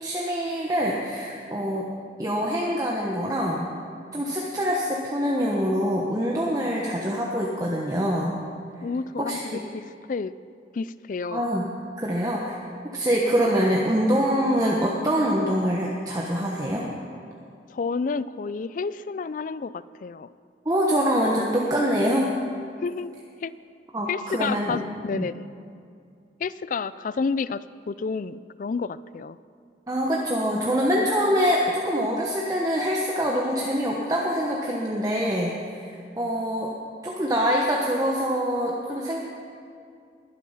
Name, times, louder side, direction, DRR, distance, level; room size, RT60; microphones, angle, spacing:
voice 1, 0.0-1.9 2.2-3.7 4.1-8.3 9.2-9.6 11.3-11.7 12.0-12.6 12.9-16.9 20.6-22.3 23.9-24.8 25.1-25.3 29.9-36.7 37.0-39.2, equal, 20° right, -2 dB, 1.1 m, -25 dB
voice 2, 8.8-10.3 10.7-11.4 17.7-20.3 22.8-23.1 23.4-23.5 24.1-25.4 26.4-29.4, left 4 dB, 45° left, 16 dB, 0.3 m, -30 dB
21.5 x 8.5 x 5.6 m, 2.4 s
head